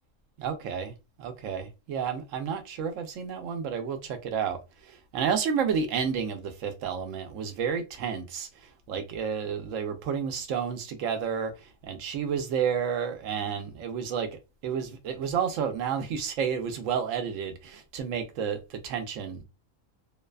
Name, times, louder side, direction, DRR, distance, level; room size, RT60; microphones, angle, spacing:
voice 1, 0.4-4.6 4.9-8.5 8.9-14.4 14.6-19.4, right 7 dB, 80° right, 0.9 m, -31 dB
2.6 x 2.2 x 2.3 m
omnidirectional pair, 1.3 m